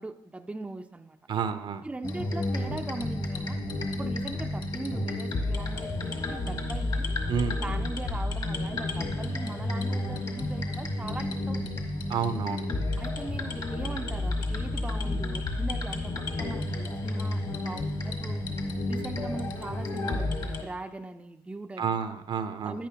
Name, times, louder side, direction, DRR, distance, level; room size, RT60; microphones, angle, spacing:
voice 1, 0.0-1.2 1.8-3.6 3.9-7.1 7.6-11.8 13.0-18.5 18.9-22.0 22.6-22.9, right 2 dB, 10° right, 7 dB, 0.5 m, -40 dB
voice 2, 1.3-1.8 7.3-7.6 12.1-12.6 21.8-22.8, right 6 dB, 55° right, 10 dB, 0.7 m, -30 dB
sound 1, 2.0-20.6, left 2 dB, 45° left, 1.5 m, -31 dB
10.0 x 8.8 x 2.9 m, 0.85 s
supercardioid pair, 70°, 10 cm